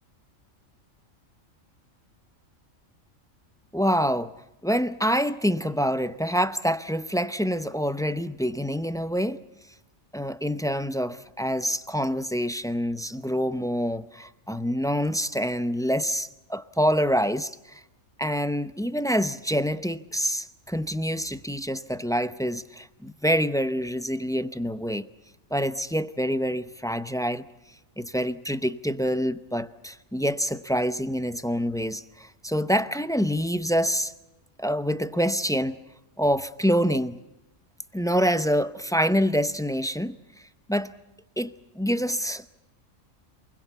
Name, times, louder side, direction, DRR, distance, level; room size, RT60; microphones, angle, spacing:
voice 1, 3.7-4.3 4.6-9.4 10.1-17.8 18.2-25.1 25.5-27.5 28.0-34.1 34.6-35.8 36.2-37.2 37.9-40.2 40.7-40.9 41.4-42.6, equal, 5° left, 0.5 m, -26 dB
28.0 x 21.5 x 7.0 m
omnidirectional pair, 1.4 m